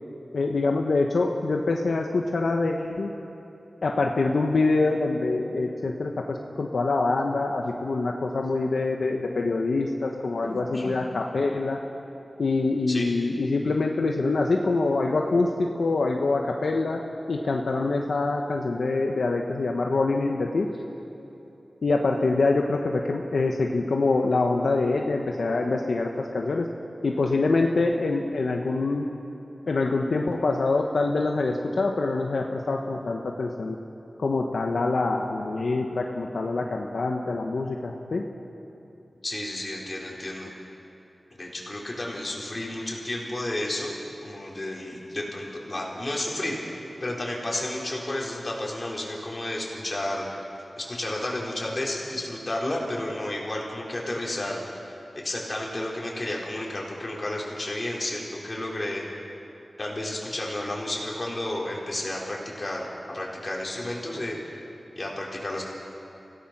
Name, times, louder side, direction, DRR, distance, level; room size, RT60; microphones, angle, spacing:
voice 1, 0.3-3.1 3.8-11.8 12.4-17.0 17.3-20.7 21.8-26.7 27.0-29.1 29.7-33.8 34.2-38.2, left 3 dB, 85° left, 1 dB, 1.1 m, -25 dB
voice 2, 10.4-10.9 12.9-13.1 39.2-40.5 41.3-43.9 44.2-46.6 47.0-50.4 50.8-55.0 55.2-59.0 59.8-64.6 65.0-65.7, left 1 dB, 35° left, -3 dB, 4.3 m, -32 dB
26.5 x 16.5 x 6.0 m, 3.0 s
wide cardioid pair, 85°, 0 cm